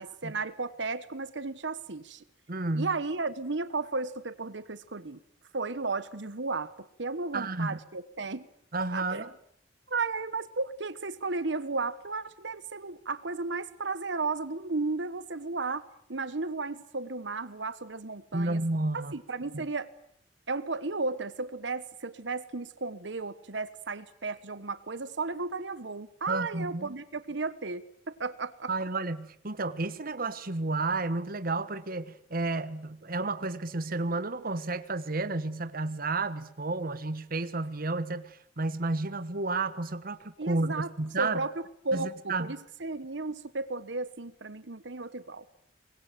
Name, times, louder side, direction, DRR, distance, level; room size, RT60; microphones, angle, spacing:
voice 1, 0.0-2.2 2.7-5.2 5.5-8.5 8.9-9.2 9.9-18.6 18.9-19.9 20.5-28.7 40.4-41.5 41.8-45.7, right 3 dB, 70° right, 13 dB, 1.3 m, -34 dB
voice 2, 2.5-2.9 7.3-7.8 8.7-9.3 18.3-19.1 19.5-19.7 26.3-26.9 28.7-41.4 41.9-42.5, right 2 dB, 50° right, 12 dB, 1.3 m, -31 dB
25.0 x 21.5 x 9.1 m, 0.66 s
head